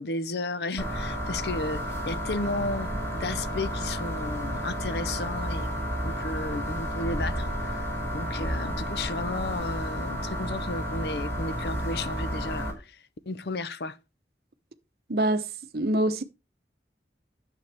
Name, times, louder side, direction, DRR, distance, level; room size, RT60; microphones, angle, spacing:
voice 1, 0.0-5.7 6.0-14.0, left 2 dB, 70° left, 0.6 m, -34 dB
sound 1, 0.8-12.7, equal, 15° left, 2.8 m, -31 dB
voice 2, 15.1-15.5 15.7-16.2, right 1 dB, 60° right, 0.8 m, -24 dB
10.5 x 7.0 x 3.3 m
head